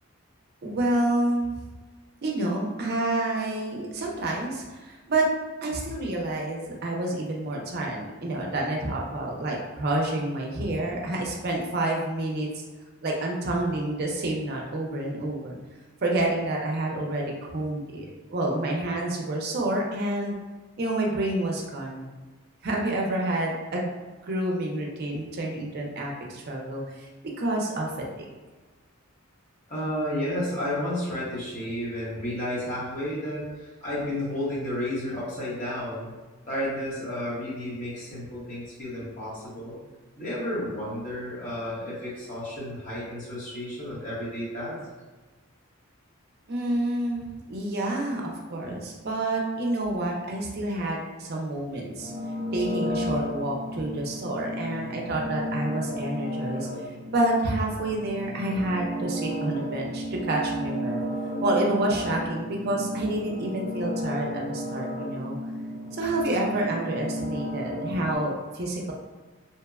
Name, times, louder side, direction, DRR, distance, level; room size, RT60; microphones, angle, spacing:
voice 1, 0.6-1.6 2.2-5.3 5.6-12.6 13.0-15.6 16.0-20.3 20.8-22.1 22.6-23.9 24.2-27.1 27.4-28.3 46.5-52.1 52.5-61.0 61.4-65.4 65.9-68.9, right 1 dB, 45° right, -1 dB, 0.4 m, -28 dB
voice 2, 29.7-36.1 36.5-39.8 40.2-44.8, left 1 dB, 35° left, -8 dB, 0.9 m, -32 dB
sound 1, 52.0-68.2, equal, 80° left, 0.6 m, -33 dB
2.8 x 2.1 x 2.3 m, 1.3 s
head